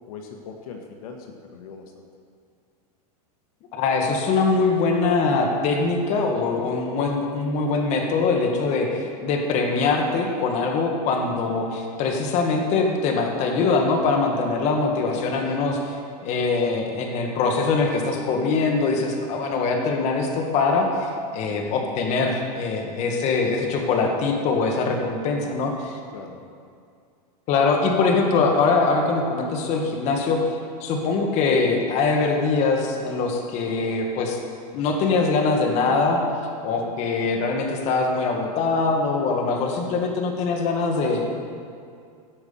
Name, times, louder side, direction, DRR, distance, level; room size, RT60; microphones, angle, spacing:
voice 1, 0.1-1.8 15.3-15.4 26.1-26.4, left 5 dB, 65° left, 3 dB, 1.4 m, -40 dB
voice 2, 3.7-15.9 16.2-26.0 27.5-30.4 30.8-34.4 34.7-36.2 36.6-41.4, left 4 dB, 35° left, 2 dB, 1.7 m, -23 dB
16.0 x 6.0 x 7.0 m, 2.3 s
supercardioid pair, 150°, 20 cm